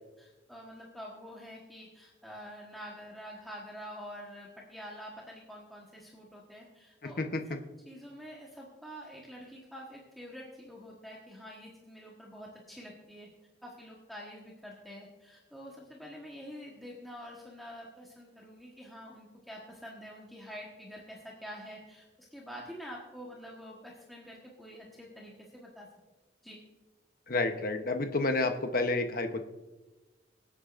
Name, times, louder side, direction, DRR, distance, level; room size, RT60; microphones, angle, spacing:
voice 1, 0.2-7.4 7.8-13.3 13.6-22.0 22.3-25.9 26.4-26.6, equal, ahead, -4 dB, 1.3 m, -47 dB
voice 2, 27.3-29.4, left 2 dB, 50° left, 6 dB, 0.9 m, -30 dB
24.5 x 8.3 x 2.5 m, 1.1 s
head